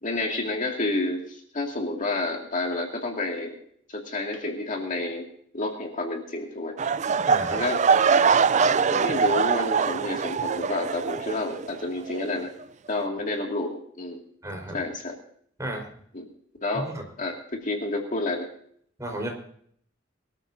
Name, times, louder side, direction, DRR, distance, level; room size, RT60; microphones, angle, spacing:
voice 1, 0.0-3.6 3.9-5.2 5.5-6.8 7.5-7.8 8.9-12.5 12.9-14.2 14.7-15.2 16.1-16.2 16.6-16.9 17.2-18.5, left 2 dB, 40° left, 1 dB, 2.3 m, -29 dB
sound 1, 6.8-11.8 12.1-12.4 13.0-13.1, right 5 dB, 35° right, 0.4 m, -23 dB
voice 2, 7.3-7.6 14.4-14.8 15.6-15.9 16.7-17.0 19.0-19.3, right 1 dB, 15° right, 2 dB, 4.5 m, -33 dB
23.0 x 13.5 x 2.7 m, 0.62 s
head